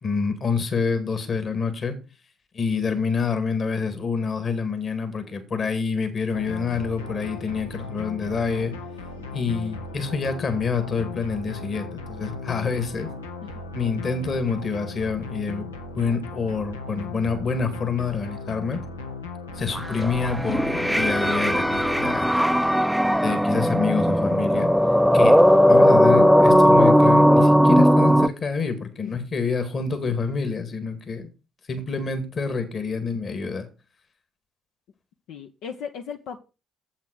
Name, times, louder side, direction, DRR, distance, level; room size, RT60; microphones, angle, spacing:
voice 1, 0.0-2.0 2.5-8.7 9.3-13.1 13.7-18.8 19.5-22.5 23.2-24.7 25.1-25.4 25.6-31.3 31.7-33.7, left 5 dB, 40° left, 2.2 m, -27 dB
sound 1, 6.3-22.2, left 3 dB, 85° left, 1.1 m, -37 dB
sound 2, 19.8-28.3, equal, ahead, 0.5 m, -17 dB
voice 2, 35.3-36.4, left 7 dB, 65° left, 0.8 m, -37 dB
7.9 x 7.3 x 6.3 m
figure-of-eight pair, 50°, 0 cm